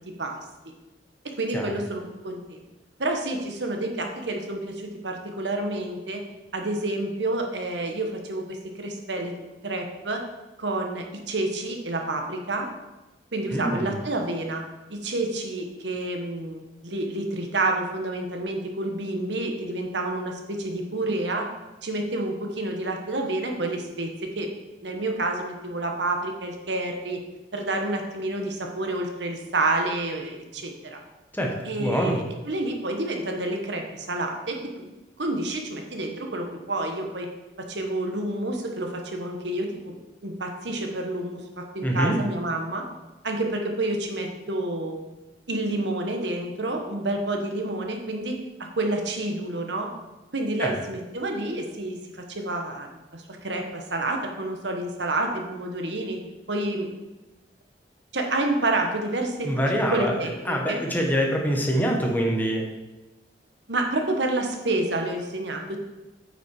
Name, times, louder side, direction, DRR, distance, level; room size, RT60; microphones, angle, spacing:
voice 1, 1.4-2.6 3.0-6.2 6.5-9.3 9.6-10.2 10.6-12.7 13.3-14.6 14.9-21.4 21.8-24.5 24.8-27.2 27.5-31.0 31.6-34.9 35.2-37.3 37.7-42.8 43.2-45.0 45.5-49.9 50.3-56.2 56.5-56.9 58.1-59.5 59.9-60.8 63.7-65.8, right 2 dB, 80° right, 3 dB, 1.4 m, -29 dB
voice 2, 13.5-13.9 31.3-32.2 41.8-42.2 50.6-50.7 59.4-60.1 60.4-62.7, equal, 10° left, 0 dB, 1.4 m, -25 dB
8.9 x 6.0 x 4.8 m, 1.1 s
head